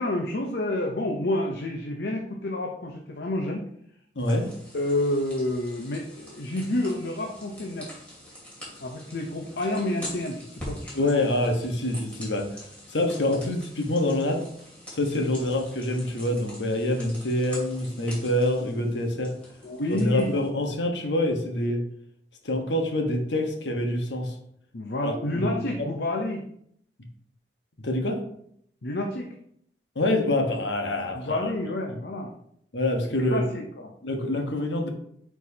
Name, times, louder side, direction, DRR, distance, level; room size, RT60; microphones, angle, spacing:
voice 1, 0.0-3.6 4.7-7.9 8.8-11.4 15.2-15.3 19.6-20.4 24.7-26.4 28.8-29.3 31.1-32.3 33.3-33.9, left 1 dB, 65° left, 1 dB, 0.8 m, -29 dB
voice 2, 4.1-4.5 10.9-12.5 12.9-14.4 14.9-19.3 19.9-21.8 22.4-24.3 25.0-25.9 27.8-28.2 29.9-31.5 32.7-33.5 34.0-34.9, left 1 dB, 85° left, 3 dB, 1.2 m, -26 dB
sound 1, 4.2-20.5, equal, 10° left, 2.7 m, -44 dB
8.5 x 4.6 x 2.8 m, 0.69 s
head